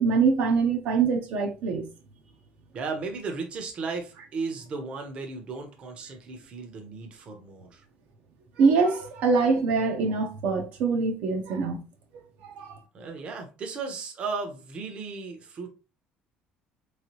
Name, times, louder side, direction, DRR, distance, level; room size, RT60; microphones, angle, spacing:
voice 1, 0.0-1.9 8.6-11.8 12.4-12.8, right 4 dB, 65° right, 0.8 m, -24 dB
voice 2, 2.7-7.8 12.9-15.7, right 4 dB, 40° right, 0.8 m, -35 dB
3.4 x 3.2 x 3.0 m
cardioid pair, 145°, 3 cm